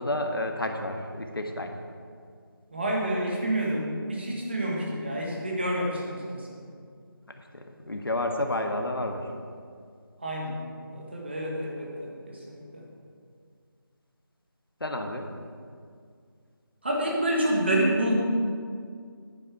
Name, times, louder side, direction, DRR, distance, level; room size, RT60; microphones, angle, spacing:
voice 1, 0.0-1.7 7.5-9.3 14.8-15.3, left 1 dB, 70° left, 3 dB, 1.5 m, -30 dB
voice 2, 2.7-6.6 10.2-10.6 10.9-12.9 16.8-18.2, right 1 dB, 30° right, -2 dB, 1.5 m, -28 dB
11.0 x 9.4 x 4.7 m, 2.2 s
figure-of-eight pair, 175°, 12 cm